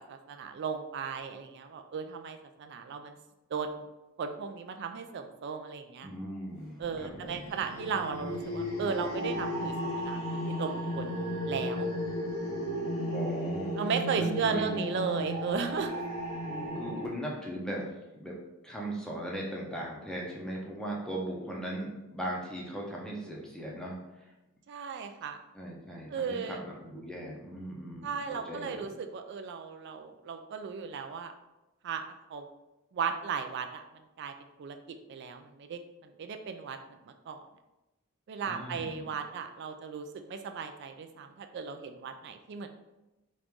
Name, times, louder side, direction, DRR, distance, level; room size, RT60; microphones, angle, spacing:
voice 1, 0.1-3.2 3.5-3.8 4.2-6.1 6.8-10.2 10.6-11.2 11.5-11.9 13.8-16.0 24.7-25.4 26.1-26.6 28.0-31.3 31.8-32.0 32.3-32.5 32.9-33.8 34.2-34.3 34.6-34.8 35.1-36.8 37.1-37.4 38.3-42.7, right 5 dB, 50° right, 7 dB, 0.3 m, -35 dB
voice 2, 6.0-7.5 13.1-13.7 14.2-14.8 16.7-18.4 18.6-24.0 25.5-28.8 38.5-39.1, right 1 dB, 5° left, -3 dB, 0.6 m, -38 dB
sound 1, 6.9-17.1, equal, 70° left, 0.9 m, -34 dB
3.0 x 2.5 x 3.5 m, 0.99 s
head